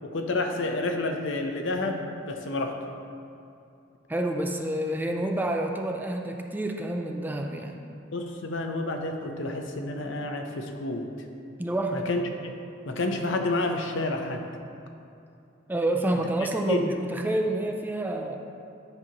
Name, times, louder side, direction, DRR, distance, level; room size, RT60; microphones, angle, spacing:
voice 1, 0.0-2.8 8.1-11.1 11.9-12.2 12.9-14.4 16.7-16.8, left 2 dB, 70° left, 4 dB, 0.7 m, -29 dB
voice 2, 4.1-7.8 11.6-12.1 15.7-18.4, right 1 dB, 10° right, 3 dB, 0.3 m, -28 dB
9.9 x 5.9 x 2.9 m, 2.6 s
head